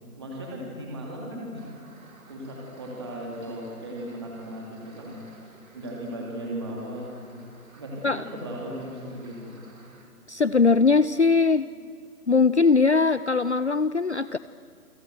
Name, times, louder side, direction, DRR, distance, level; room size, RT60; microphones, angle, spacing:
voice 1, 0.2-1.6 2.3-7.1 7.8-9.6, equal, 15° right, -3 dB, 2.9 m, -37 dB
sound 1, 1.6-10.0, right 2 dB, 65° right, 7.2 m, -54 dB
voice 2, 10.3-11.7 12.3-14.4, left 4 dB, 50° left, 15 dB, 0.6 m, -20 dB
28.5 x 25.5 x 7.9 m, 2.2 s
hypercardioid pair, 180°, 45 cm